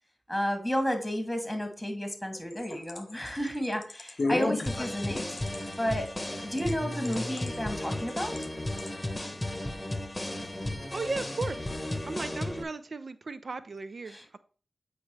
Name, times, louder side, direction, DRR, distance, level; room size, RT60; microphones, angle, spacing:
voice 1, 0.3-5.3 5.8-6.1 6.4-8.4 14.1-14.3, equal, ahead, 4 dB, 2.4 m, -32 dB
sound 1, 2.4-6.7 7.0-7.6 8.1-8.5 8.8-8.9, left 3 dB, 55° left, 0.5 m, -34 dB
sound 2, 4.7-12.6, left 1 dB, 20° left, 1.2 m, -34 dB
voice 2, 10.9-11.7 12.0-14.4, right 3 dB, 65° right, 12 dB, 0.6 m, -36 dB
8.4 x 4.8 x 3.2 m, 0.40 s
cardioid pair, 50°, 0 cm